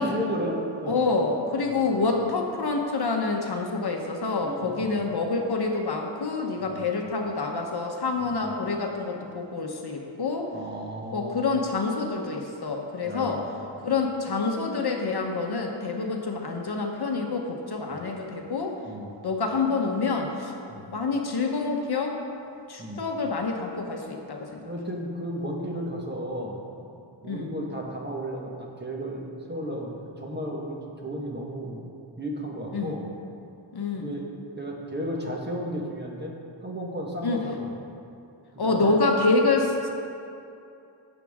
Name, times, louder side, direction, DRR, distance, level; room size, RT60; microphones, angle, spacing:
voice 1, 0.0-0.9 1.6-1.8 4.4-5.0 6.6-6.8 8.2-8.4 10.5-11.4 13.0-13.4 17.9-18.0 18.8-19.2 20.7-20.8 22.8-23.0 24.6-26.9 27.2-31.9 32.2-33.1 33.9-34.2 34.6-36.3 36.6-37.7 38.5-39.0, equal, 20° right, -1 dB, 1.3 m, -34 dB
voice 2, 0.9-10.5 11.1-13.4 13.8-18.8 19.2-20.5 20.9-22.2 22.7-24.6 27.3-27.5 32.7-32.9 33.7-34.1 37.2-37.4 38.6-39.9, left 3 dB, 50° left, 2 dB, 1.1 m, -27 dB
16.5 x 7.3 x 3.6 m, 2.7 s
wide cardioid pair, 160°, 48 cm